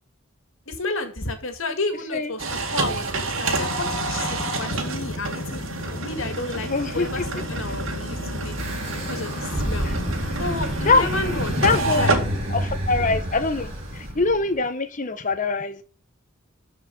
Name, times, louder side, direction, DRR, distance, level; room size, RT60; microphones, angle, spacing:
voice 1, 0.7-5.7 5.9-6.7 6.9-8.7 9.1-9.9 10.4-12.2, left 2 dB, 70° left, 2.1 m, -31 dB
sound 1, 2.4-14.1, right 3 dB, 70° right, 2.1 m, -29 dB
sound 2, 3.5-11.8, left 2 dB, 55° left, 0.7 m, -36 dB
voice 2, 6.5-7.3 9.8-10.0 10.8-11.1 11.6-12.1 12.5-15.8, left 3 dB, 40° left, 1.0 m, -23 dB
sound 3, 8.6-14.5, equal, 30° right, 3.0 m, -29 dB
13.5 x 4.9 x 5.4 m
head